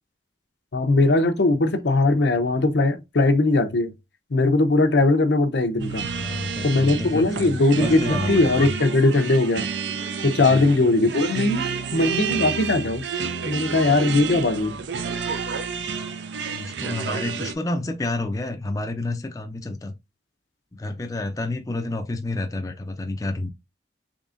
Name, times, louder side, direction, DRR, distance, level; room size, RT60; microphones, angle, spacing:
voice 1, 0.7-3.9 4.3-6.1 6.6-9.7 10.2-11.6 11.9-13.0 13.4-14.8, left 2 dB, 75° left, 0.6 m, -20 dB
sound 1, 5.8-17.5, right 5 dB, 80° right, 0.5 m, -30 dB
voice 2, 6.1-8.7 16.4-19.9 20.7-23.5, left 2 dB, 20° left, 0.4 m, -30 dB
3.8 x 3.4 x 2.4 m
head